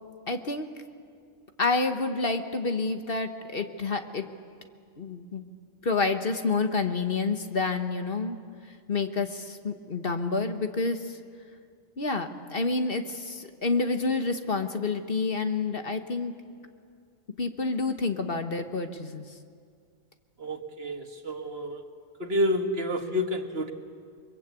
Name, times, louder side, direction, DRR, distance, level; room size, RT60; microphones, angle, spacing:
voice 1, 0.3-0.7 1.6-4.2 5.0-5.4 5.8-8.4 8.7-11.2 12.0-16.3 17.4-19.2, left 3 dB, 45° left, 7 dB, 1.4 m, -28 dB
voice 2, 20.4-21.8 22.2-23.7, left 1 dB, 50° right, 5 dB, 1.8 m, -29 dB
29.0 x 23.0 x 8.4 m, 2.2 s
omnidirectional pair, 1.3 m